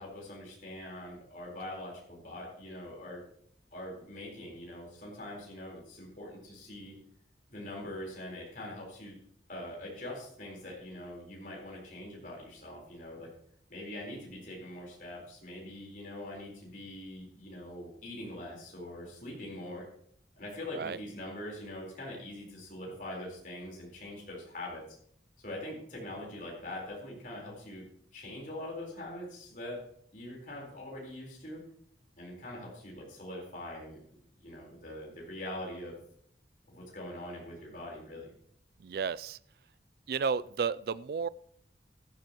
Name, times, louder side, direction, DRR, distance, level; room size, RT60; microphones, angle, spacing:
voice 1, 0.0-3.2 3.7-7.0 7.5-9.2 9.5-13.3 13.7-19.8 20.4-24.8 25.4-27.8 28.1-29.8 30.1-31.6 32.2-34.0 34.4-36.0 36.7-38.3, left 1 dB, 45° left, -3 dB, 4.3 m, -43 dB
voice 2, 38.8-39.4 40.1-41.3, right 6 dB, 55° right, 18 dB, 0.3 m, -32 dB
14.0 x 12.0 x 3.0 m, 0.65 s
head